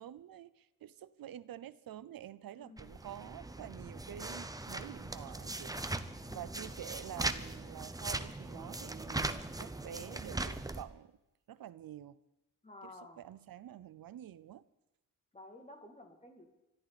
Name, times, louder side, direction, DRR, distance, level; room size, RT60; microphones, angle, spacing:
voice 1, 0.0-11.1 11.5-12.2 12.8-14.6, right 11 dB, 80° right, 17 dB, 0.6 m, -48 dB
voice 2, 2.6-3.0 6.2-6.7 12.6-13.2 15.3-16.5, left 2 dB, 20° left, 3 dB, 2.5 m, -53 dB
sound 1, 2.8-10.8, right 2 dB, 10° right, 0.7 m, -40 dB
25.0 x 12.5 x 4.2 m, 0.98 s
wide cardioid pair, 150°, 34 cm